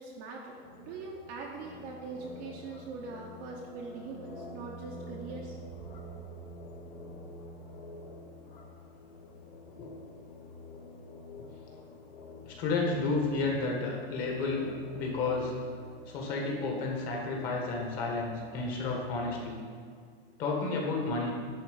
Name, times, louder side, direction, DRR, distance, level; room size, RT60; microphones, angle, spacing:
voice 1, 0.0-5.6, right 4 dB, 25° right, -1 dB, 0.8 m, -42 dB
sound 1, 0.5-19.4, left 1 dB, 55° left, 1.8 m, -48 dB
voice 2, 12.4-15.5 16.1-19.6 20.4-21.3, left 3 dB, 30° left, -1 dB, 1.8 m, -32 dB
10.5 x 4.3 x 7.8 m, 2.1 s
supercardioid pair, 175°, 30 cm